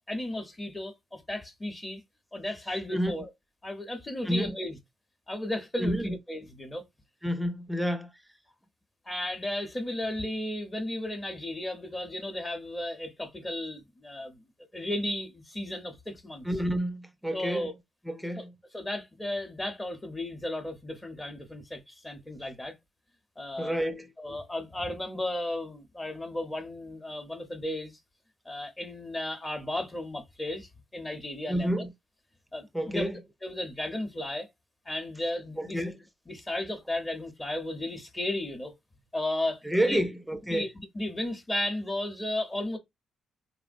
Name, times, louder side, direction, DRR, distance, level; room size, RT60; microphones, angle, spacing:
voice 1, 0.1-2.0 2.3-3.3 3.6-4.8 5.3-6.8 9.0-14.4 14.7-16.5 17.3-17.7 18.4-18.5 18.7-22.7 23.4-23.8 24.2-28.0 28.4-31.8 32.5-34.5 34.8-35.8 36.3-38.7 39.1-40.0 40.5-42.8, left 1 dB, 20° left, 0.8 m, -34 dB
voice 2, 4.3-4.6 5.8-6.1 7.2-8.1 16.5-17.7 18.1-18.5 23.6-24.1 31.5-31.9 32.7-33.1 35.6-36.0 39.7-40.7, equal, 5° right, 0.5 m, -29 dB
3.4 x 2.1 x 2.5 m
cardioid pair, 90°, 0 cm